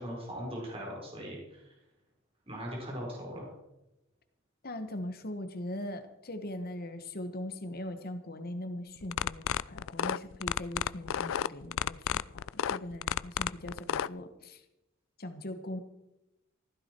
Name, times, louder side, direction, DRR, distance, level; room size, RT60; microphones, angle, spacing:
voice 1, 0.0-1.6 2.5-3.5, equal, 30° right, -2 dB, 4.7 m, -39 dB
voice 2, 4.6-12.4 12.7-14.6 15.2-15.8, left 1 dB, 50° left, 9 dB, 1.4 m, -40 dB
sound 1, 9.0-14.1, left 9 dB, 70° left, 0.4 m, -31 dB
15.5 x 13.5 x 4.6 m, 0.94 s
head